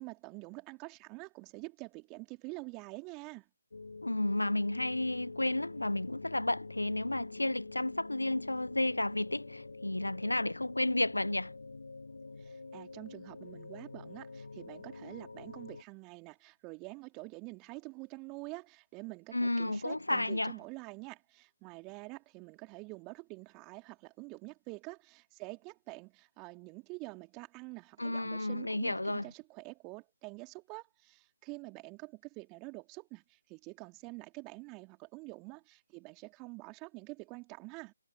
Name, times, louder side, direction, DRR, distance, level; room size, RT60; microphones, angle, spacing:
voice 1, 0.0-3.4 12.4-37.9, right 27 dB, 15° right, 3.6 m, -47 dB
sound 1, 3.7-15.8, left 3 dB, 65° left, 1.5 m, -47 dB
voice 2, 4.0-11.5 19.3-20.5 28.0-29.3, left 1 dB, 80° left, 0.9 m, -32 dB
figure-of-eight pair, 150°, 0 cm